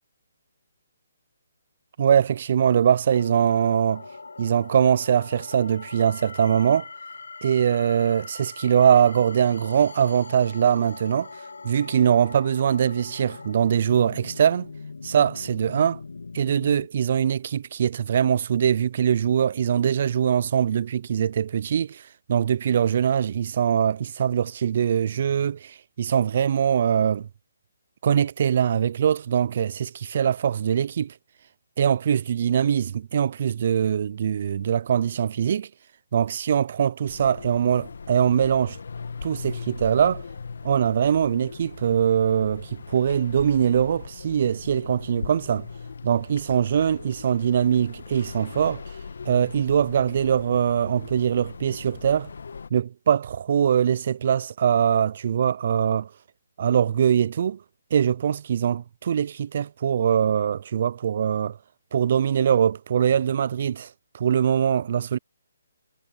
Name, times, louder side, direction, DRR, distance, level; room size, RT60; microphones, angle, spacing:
voice 1, 2.0-4.0 4.4-6.9 7.4-11.3 11.6-14.7 15.0-16.0 16.3-22.0 22.3-27.3 28.0-31.1 31.8-35.7 36.1-38.8 39.2-40.2 40.6-45.7 46.0-48.8 49.3-52.3 52.7-56.1 56.6-57.6 57.9-61.6 61.9-65.2, right 8 dB, 50° right, 0.4 m, -22 dB
sound 1, 3.1-16.9, left 4 dB, 90° left, 1.9 m, -41 dB
sound 2, 37.1-52.7, left 5 dB, 75° left, 1.8 m, -39 dB
hypercardioid pair, 155°, 0 cm